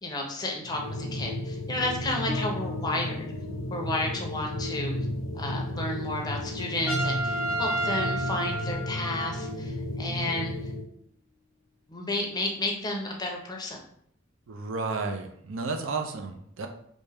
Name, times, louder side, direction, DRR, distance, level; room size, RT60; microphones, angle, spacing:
voice 1, 0.0-3.3 3.7-4.9 5.3-10.5 11.9-13.8, left 2 dB, 20° left, 0 dB, 0.6 m, -32 dB
sound 1, 0.6-10.9, left 1 dB, 85° left, 0.6 m, -33 dB
Bass guitar, 2.3-9.4, left 4 dB, 40° right, 0.9 m, -46 dB
Trumpet, 6.9-9.5, right 2 dB, 10° right, 1.1 m, -31 dB
voice 2, 14.5-16.7, right 4 dB, 70° right, 5 dB, 0.5 m, -32 dB
3.3 x 2.6 x 3.3 m, 0.67 s
head